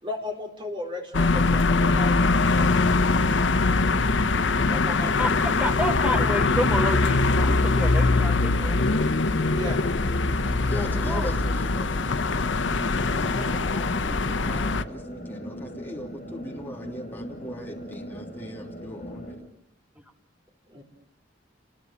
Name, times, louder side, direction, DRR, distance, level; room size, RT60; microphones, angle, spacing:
voice 1, 0.0-2.6 4.6-5.3 9.5-9.8 14.3-15.0 20.7-20.8, left 1 dB, 25° right, 3 dB, 4.5 m, -36 dB
sound 1, 1.1-14.8, left 3 dB, 85° left, 0.9 m, -22 dB
sound 2, 2.6-19.3, equal, 40° left, 6.7 m, -39 dB
voice 2, 5.2-8.8 11.0-11.3, equal, 5° right, 6 dB, 1.4 m, -30 dB
voice 3, 10.5-12.0 13.1-19.4, equal, 10° left, 0 dB, 3.1 m, -39 dB
29.5 x 22.0 x 7.0 m, 0.76 s
head